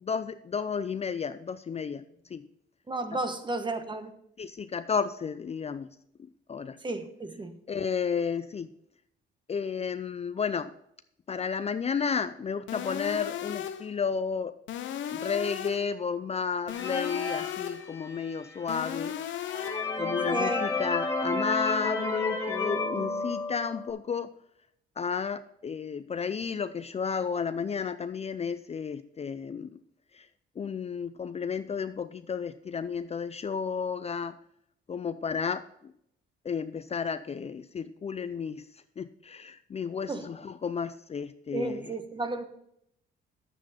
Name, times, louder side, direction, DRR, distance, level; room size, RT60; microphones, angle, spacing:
voice 1, 0.0-2.0 2.3-2.5 4.4-5.9 6.5-6.8 7.7-8.7 9.5-10.7 11.3-14.5 15.1-19.2 20.0-24.3 25.0-29.8 30.1-30.3 30.6-34.4 34.9-35.9 36.4-41.8, left 6 dB, 30° left, 0.5 m, -32 dB
voice 2, 2.9-4.1 6.8-7.6 20.3-20.7 40.1-40.3 41.5-42.4, right 2 dB, 25° right, 1.2 m, -33 dB
sound 1, 12.7-13.9 14.7-15.9 16.7-17.9 18.7-19.9, left 10 dB, 70° left, 0.8 m, -36 dB
sound 2, 16.7-18.4 18.9-19.0 19.4-23.9, left 3 dB, 15° left, 2.1 m, -31 dB
10.0 x 8.2 x 4.2 m
cardioid pair, 90°, 20 cm